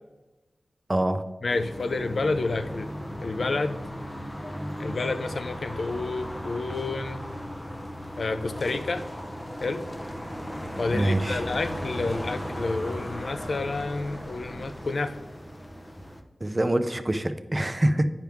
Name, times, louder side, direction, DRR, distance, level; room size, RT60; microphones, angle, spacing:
voice 1, 0.9-1.2 10.9-11.4 16.4-18.1, right 1 dB, 25° right, 9 dB, 0.5 m, -25 dB
voice 2, 1.4-2.9 3.2-3.8 4.8-7.3 8.2-9.1 9.6-9.9 10.8-15.2, left 3 dB, 70° left, 10 dB, 0.4 m, -29 dB
sound 1, 1.5-16.2, equal, 15° left, 0.8 m, -36 dB
9.1 x 5.8 x 3.5 m, 1.1 s
wide cardioid pair, 75°, 0 cm